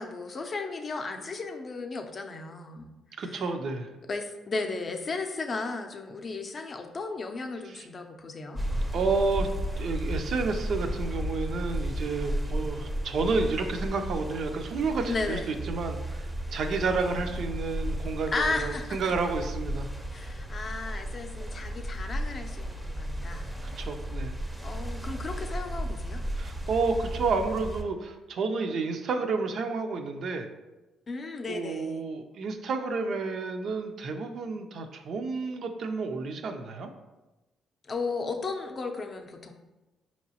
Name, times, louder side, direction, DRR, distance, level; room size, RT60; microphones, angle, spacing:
voice 1, 0.0-2.9 3.2-3.4 4.1-8.6 15.1-15.5 18.3-19.1 20.1-23.5 24.6-26.2 31.1-32.0 37.8-39.5, left 3 dB, 40° left, 4 dB, 0.5 m, -35 dB
voice 2, 3.2-3.9 7.7-7.9 8.9-9.5 9.8-19.9 23.6-24.4 26.4-30.5 31.5-36.9, right 4 dB, 65° right, 6 dB, 0.4 m, -30 dB
sound 1, 8.5-27.8, equal, 10° right, 0.5 m, -34 dB
4.6 x 2.9 x 2.8 m, 1.1 s
cardioid pair, 90°, 0 cm